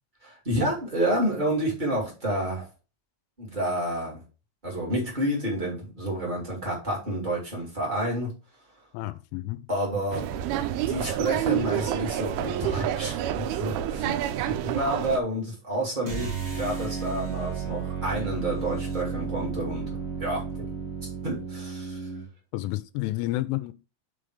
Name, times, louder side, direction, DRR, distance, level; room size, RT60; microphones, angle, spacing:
voice 1, 0.2-2.7 3.4-4.2 4.6-8.3 9.7-10.3 10.9-20.7 21.2-22.1, right 1 dB, 20° right, 1.2 m, -29 dB
voice 2, 8.9-9.7 22.5-23.7, left 18 dB, 90° left, 3.1 m, -30 dB
sound 1, 10.1-15.2, right 11 dB, 85° right, 3.0 m, -28 dB
sound 2, 16.0-22.3, right 5 dB, 45° right, 1.7 m, -33 dB
7.1 x 3.9 x 4.9 m
omnidirectional pair, 5.6 m